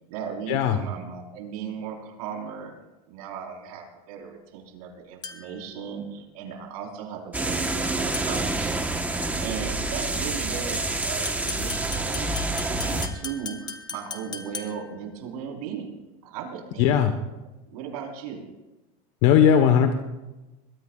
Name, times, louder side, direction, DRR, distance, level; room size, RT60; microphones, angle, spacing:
voice 1, 0.1-2.7 3.1-16.0 16.2-17.0 17.7-18.6, right 7 dB, 90° right, 1 dB, 4.5 m, -37 dB
sound 1, 5.2-5.7 8.1-8.5 11.0-15.0, left 5 dB, 20° left, 1.1 m, -38 dB
sound 2, 7.3-13.1, right 2 dB, 10° right, 1.2 m, -27 dB
voice 2, 16.8-17.1 19.2-19.9, left 8 dB, 65° left, 6 dB, 1.3 m, -18 dB
23.0 x 22.0 x 2.5 m, 1.1 s
supercardioid pair, 145°, 18 cm